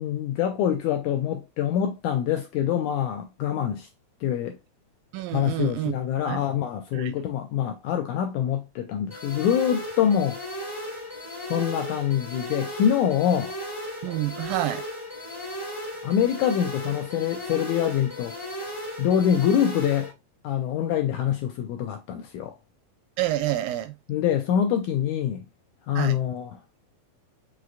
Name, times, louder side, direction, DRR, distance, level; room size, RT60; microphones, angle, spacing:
voice 1, 0.0-3.9 4.2-4.6 5.3-10.4 11.5-13.5 16.0-18.4 19.0-20.1 20.4-22.5 24.1-25.4 25.9-26.6, left 9 dB, 80° left, 1.8 m, -25 dB
voice 2, 5.1-6.5 6.9-7.1 14.0-14.8 23.2-23.9 26.0-26.2, right 14 dB, 85° right, 2.3 m, -28 dB
sound 1, 9.1-20.1, equal, 20° left, 0.6 m, -36 dB
5.6 x 3.2 x 2.5 m
omnidirectional pair, 4.0 m